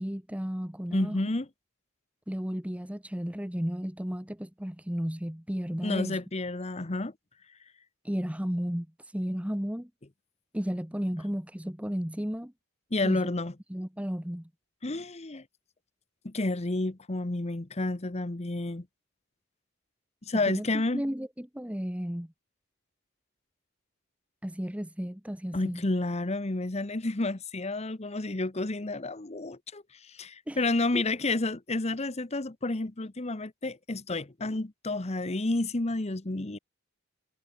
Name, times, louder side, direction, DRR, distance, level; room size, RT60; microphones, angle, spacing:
voice 1, 0.0-1.2 2.3-6.2 8.0-9.9 10.5-12.5 13.0-13.3 13.7-14.5 20.4-22.3 24.4-25.8 30.5-30.7 30.9-31.0, equal, 5° right, 1.1 m, -33 dB
voice 2, 0.9-1.5 5.8-7.1 12.9-13.5 14.8-15.4 16.2-18.9 20.2-21.0 25.5-36.6, left 2 dB, 30° left, 1.0 m, -30 dB
head